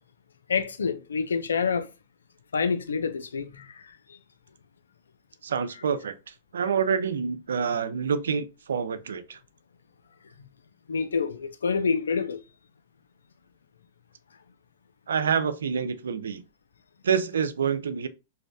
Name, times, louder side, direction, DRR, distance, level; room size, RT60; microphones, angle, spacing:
voice 1, 0.5-1.9 2.5-4.2 10.4-10.5 10.9-12.4, left 5 dB, 90° left, 0.3 m, -27 dB
voice 2, 5.4-9.4 15.1-16.4 17.0-18.1, right 6 dB, 85° right, 0.3 m, -27 dB
2.5 x 2.1 x 2.5 m
hypercardioid pair, 115°, 0 cm